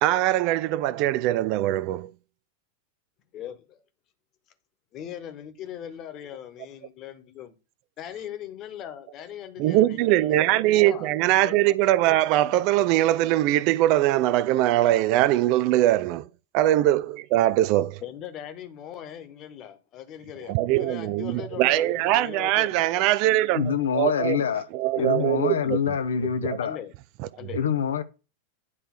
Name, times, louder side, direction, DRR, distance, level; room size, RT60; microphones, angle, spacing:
voice 1, 0.0-2.1 9.6-16.3 16.5-18.0 20.5-24.4 24.7-25.8 26.4-26.6, right 14 dB, 45° right, 0.4 m, -22 dB
voice 2, 3.3-3.8 4.9-7.5 8.0-11.1 11.4-11.7 18.0-23.0 25.0-25.3 26.6-26.9 27.4-27.7, left 10 dB, 35° left, 1.3 m, -40 dB
voice 3, 23.5-24.7 24.9-26.8 27.5-28.0, left 7 dB, 65° left, 0.6 m, -25 dB
9.8 x 3.3 x 6.5 m
figure-of-eight pair, 90°, 0 cm